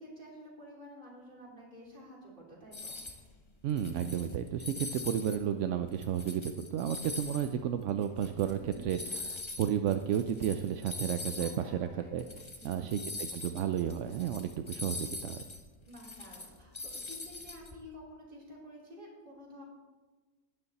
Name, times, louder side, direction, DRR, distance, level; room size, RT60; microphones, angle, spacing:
voice 1, 0.0-3.0 8.6-8.9 11.2-12.2 12.6-13.2 15.8-19.6, equal, 35° right, -5 dB, 3.5 m, -51 dB
sound 1, 2.7-3.2 3.7-5.4 5.8-11.6 11.9-12.0 12.2-17.7, left 3 dB, 25° left, 0.8 m, -43 dB
voice 2, 3.6-9.0 9.3-12.2 12.6-15.4, right 9 dB, 70° right, 8 dB, 0.8 m, -32 dB
12.0 x 9.8 x 4.1 m, 1.3 s
omnidirectional pair, 1.5 m